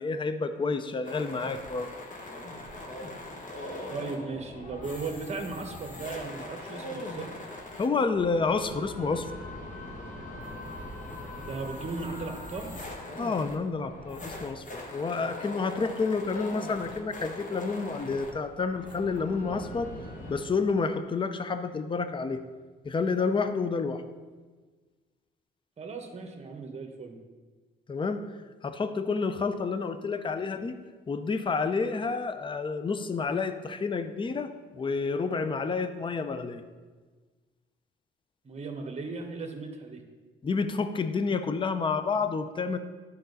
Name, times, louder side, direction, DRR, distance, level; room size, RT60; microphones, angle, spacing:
voice 1, 0.0-1.9 7.8-9.3 13.2-19.9 20.3-22.4 22.8-24.0 27.9-28.2 28.6-30.8 31.1-36.6 40.4-42.8, left 4 dB, 25° left, 10 dB, 0.6 m, -29 dB
sound 1, 1.0-20.5, left 1 dB, 40° left, 1.6 m, -41 dB
voice 2, 3.9-7.3 11.4-12.8 25.8-27.2 38.4-40.0, right 3 dB, 35° right, 4 dB, 1.4 m, -37 dB
11.5 x 5.3 x 4.0 m, 1.4 s
cardioid pair, 90°, 20 cm